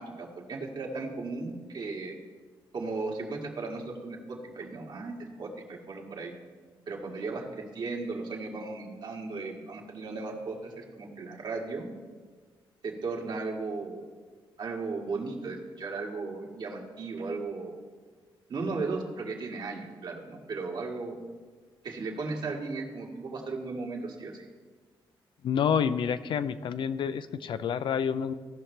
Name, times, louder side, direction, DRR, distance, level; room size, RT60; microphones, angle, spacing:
voice 1, 0.0-2.2 2.7-6.3 6.9-11.9 12.8-14.1 14.6-17.8 18.5-21.2 21.8-24.5, right 3 dB, 60° right, -1 dB, 1.9 m, -36 dB
voice 2, 25.4-28.3, left 7 dB, 70° left, 13 dB, 0.4 m, -28 dB
16.5 x 5.8 x 3.3 m, 1.5 s
cardioid pair, 90°, 9 cm